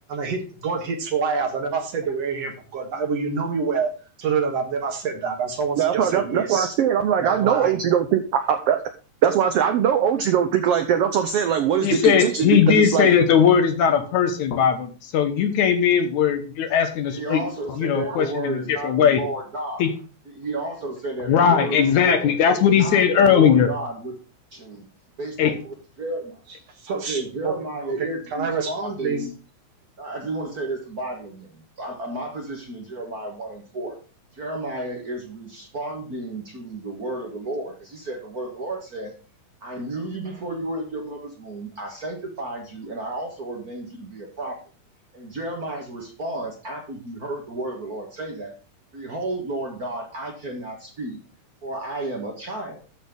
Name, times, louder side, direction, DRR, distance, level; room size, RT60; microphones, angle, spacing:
voice 1, 0.1-3.9 4.2-6.7 7.2-7.8 26.8-27.5 28.3-29.2, right 5 dB, 55° right, 4 dB, 2.4 m, -26 dB
voice 2, 5.8-8.2 8.5-8.8 9.2-13.1 18.1-18.2, right 9 dB, 75° right, 7 dB, 1.4 m, -21 dB
voice 3, 11.8-17.4 17.8-19.2 19.8-19.9 21.3-23.7 25.4-25.5, left 7 dB, 70° left, 7 dB, 2.5 m, -19 dB
voice 4, 17.0-19.8 20.2-24.2 24.5-24.8 25.2-26.4 26.9-29.3 30.0-34.0 34.3-39.1 39.6-44.6 45.1-48.5 48.9-51.2 51.6-52.8, right 2 dB, 40° right, 1 dB, 1.5 m, -32 dB
13.0 x 4.3 x 5.3 m, 0.36 s
omnidirectional pair, 3.6 m